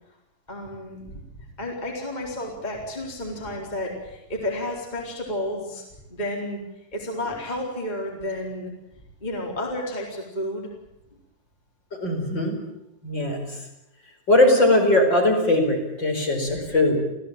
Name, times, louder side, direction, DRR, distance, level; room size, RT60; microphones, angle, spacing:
voice 1, 0.5-1.1 1.6-5.8 6.1-6.6 6.9-8.7 9.2-10.7, left 1 dB, 10° left, -1 dB, 4.0 m, -31 dB
voice 2, 12.0-12.6 13.0-13.5 14.3-17.0, left 1 dB, 30° left, 1 dB, 5.4 m, -20 dB
29.0 x 16.5 x 9.0 m, 0.89 s
omnidirectional pair, 4.1 m